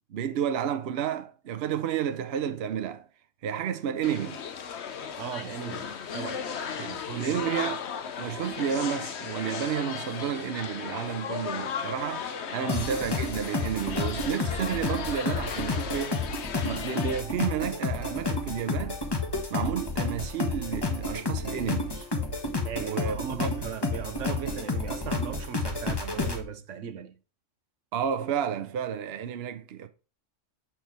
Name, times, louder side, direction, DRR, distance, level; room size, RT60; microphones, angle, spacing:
voice 1, 0.1-3.1 3.4-4.4 6.8-7.8 8.2-16.2 16.6-19.0 19.5-22.1 22.8-23.5 27.9-29.9, right 8 dB, 60° right, 0.9 m, -31 dB
sound 1, 4.0-17.2, left 7 dB, 65° left, 1.0 m, -36 dB
voice 2, 5.2-6.6 6.8-7.4 12.6-12.7 22.6-27.1, right 8 dB, 80° right, 1.1 m, -37 dB
sound 2, 12.7-26.4, left 3 dB, 20° left, 1.2 m, -31 dB
7.0 x 4.6 x 4.5 m
omnidirectional pair, 1.3 m